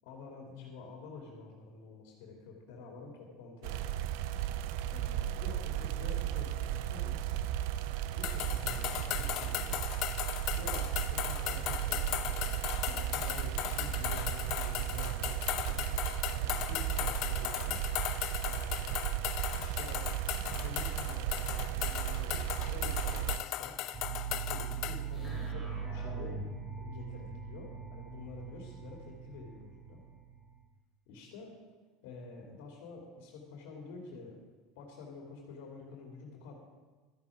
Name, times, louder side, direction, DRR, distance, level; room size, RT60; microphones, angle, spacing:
voice 1, 0.0-4.0 4.9-7.3 8.1-9.8 10.5-17.8 18.4-18.9 19.6-20.1 20.4-23.9 24.3-26.4 26.8-30.0 31.1-31.5 32.0-34.4 34.7-36.5, left 3 dB, 75° left, 0 dB, 2.4 m, -48 dB
sound 1, 3.6-23.4, right 12 dB, 70° right, 0.4 m, -35 dB
sound 2, 8.2-25.0, left 13 dB, 50° left, 0.5 m, -37 dB
sound 3, 23.9-30.6, right 6 dB, 20° right, 2.6 m, -41 dB
12.5 x 10.0 x 4.8 m, 1.3 s
supercardioid pair, 145°, 0 cm